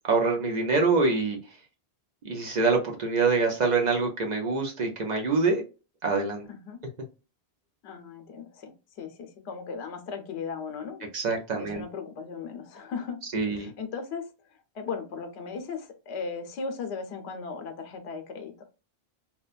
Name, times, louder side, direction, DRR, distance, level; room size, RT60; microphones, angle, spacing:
voice 1, 0.1-1.4 2.2-5.6 6.0-6.4 11.1-11.8 13.3-13.7, right 4 dB, 50° right, 1 dB, 0.6 m, -25 dB
voice 2, 6.5-6.8 7.8-11.1 11.5-13.2 13.5-14.2 14.7-18.5, left 5 dB, 85° left, 6 dB, 0.9 m, -37 dB
2.8 x 2.2 x 2.3 m, 0.32 s
omnidirectional pair, 1.1 m